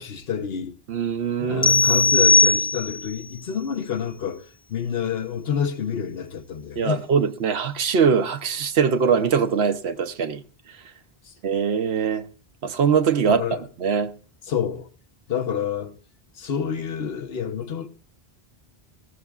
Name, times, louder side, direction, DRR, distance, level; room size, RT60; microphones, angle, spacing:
voice 1, 0.0-0.7 1.4-7.0 11.2-11.3 13.3-13.6 14.5-14.9 15.3-16.0 16.3-17.9, left 7 dB, 70° left, 1.1 m, -28 dB
voice 2, 0.9-1.9 6.8-10.4 10.7-10.8 11.4-12.3 12.6-13.4 13.8-14.1, right 6 dB, 80° right, 1.0 m, -22 dB
sound 1, 1.6-3.2, left 3 dB, 25° left, 0.4 m, -18 dB
18.5 x 14.5 x 2.4 m
omnidirectional pair, 1.1 m